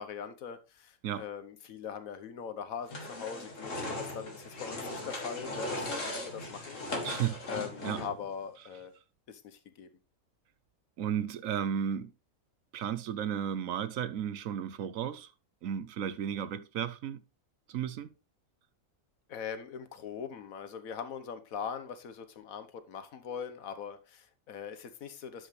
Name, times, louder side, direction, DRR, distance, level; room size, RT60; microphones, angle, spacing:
voice 1, 0.0-6.8 7.5-8.9 9.3-9.9 19.3-25.5, left 7 dB, 85° left, 1.4 m, -41 dB
sound 1, 2.9-8.3, left 1 dB, 65° left, 2.4 m, -38 dB
voice 2, 7.0-7.4 7.8-8.0 11.0-12.1 12.7-15.3 15.6-17.2 17.7-18.1, right 9 dB, 75° right, 1.1 m, -34 dB
11.0 x 5.5 x 3.2 m
omnidirectional pair, 1.4 m